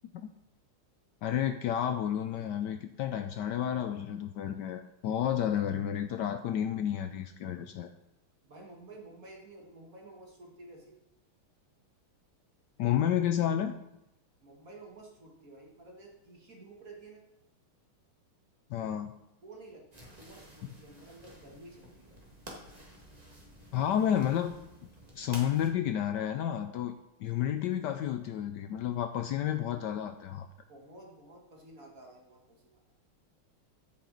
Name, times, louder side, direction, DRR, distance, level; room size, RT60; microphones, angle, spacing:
voice 1, 1.2-7.9 12.8-13.7 18.7-19.1 23.7-24.5 25.1-27.0 27.2-30.5, left 10 dB, 80° left, 8 dB, 0.9 m, -31 dB
voice 2, 8.4-10.9 14.4-17.2 19.4-19.8 20.2-22.2 30.7-32.8, right 2 dB, 45° right, 0 dB, 1.8 m, -51 dB
sound 1, 19.9-25.7, right 1 dB, 20° right, 1.6 m, -51 dB
13.0 x 6.1 x 3.9 m, 0.87 s
omnidirectional pair, 2.4 m